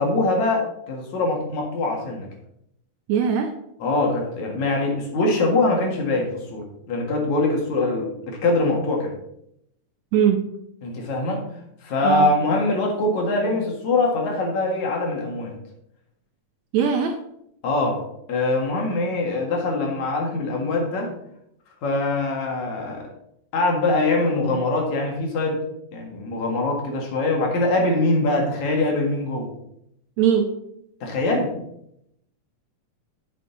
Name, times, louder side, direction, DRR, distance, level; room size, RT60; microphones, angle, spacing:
voice 1, 0.0-2.3 3.8-9.1 10.8-11.4 11.8-15.5 17.6-18.0 18.3-21.1 21.8-23.1 23.5-25.6 25.9-29.5 31.0-31.6, left 2 dB, 65° left, 0 dB, 2.9 m, -23 dB
voice 2, 3.1-3.5 10.1-10.4 12.0-12.3 16.7-17.2 30.2-30.5, right 8 dB, 75° right, 4 dB, 1.7 m, -20 dB
9.9 x 6.5 x 3.9 m, 0.77 s
omnidirectional pair, 3.8 m